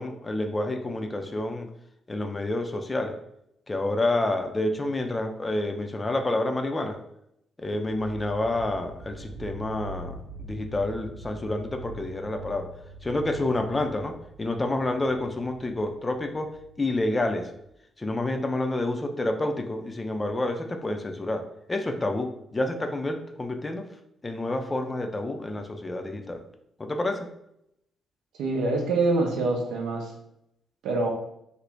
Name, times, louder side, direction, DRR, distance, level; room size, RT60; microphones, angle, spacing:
voice 1, 0.0-1.7 2.1-3.2 3.7-7.0 7.6-12.7 13.0-16.5 16.8-17.5 18.0-21.4 21.7-23.9 24.2-26.4 26.8-27.3, left 2 dB, 25° left, 5 dB, 0.4 m, -29 dB
sound 1, 7.9-17.7, right 1 dB, 90° left, 1.1 m, -44 dB
voice 2, 28.4-30.1 30.8-31.1, right 3 dB, 65° right, 1 dB, 0.5 m, -25 dB
2.6 x 2.1 x 3.3 m, 0.78 s
figure-of-eight pair, 40°, 0 cm